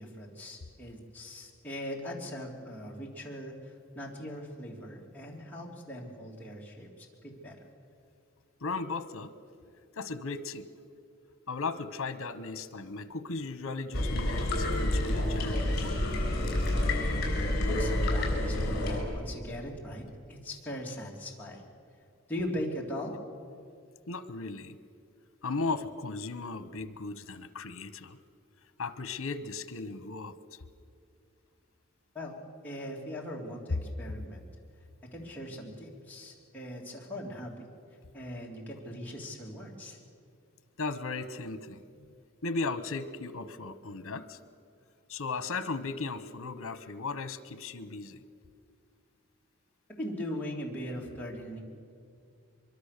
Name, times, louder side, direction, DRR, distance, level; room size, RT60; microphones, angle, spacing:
voice 1, 0.0-7.6 17.7-21.6 22.3-23.2 32.1-32.3 32.6-34.4 35.1-37.7 38.1-40.0 50.0-51.6, equal, 10° left, -4 dB, 2.9 m, -40 dB
voice 2, 8.6-9.3 9.9-10.7 11.5-16.1 24.1-24.8 25.4-28.2 28.8-30.4 40.8-41.8 42.4-44.4 45.1-48.2, left 3 dB, 80° left, 13 dB, 1.0 m, -36 dB
sound 1, 13.9-19.0, left 1 dB, 45° left, 5.9 m, -28 dB
24.0 x 23.0 x 6.7 m, 2.3 s
head